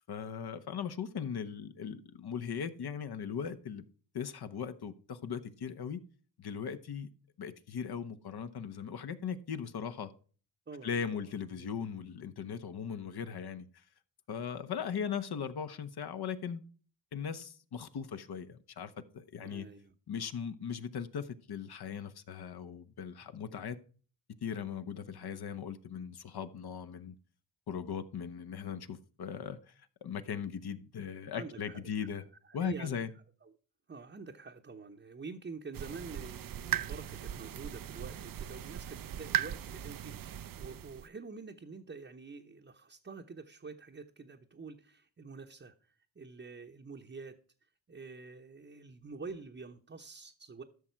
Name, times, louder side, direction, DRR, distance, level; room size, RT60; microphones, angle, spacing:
voice 1, 0.1-3.8 4.1-6.0 6.4-7.1 7.4-10.1 10.8-13.7 14.3-16.6 17.1-19.7 20.1-23.8 24.4-27.1 27.7-29.7 30.0-32.2 32.5-33.1, left 7 dB, 55° left, 1.1 m, -39 dB
voice 2, 10.7-11.8 19.4-20.0 23.2-23.3 31.3-33.0 33.4-33.5 33.9-47.4 47.9-50.6, right 4 dB, 25° right, 1.0 m, -47 dB
sound 1, 35.7-41.1, right 11 dB, 50° right, 0.6 m, -38 dB
13.0 x 6.2 x 4.5 m
cardioid pair, 65°, 46 cm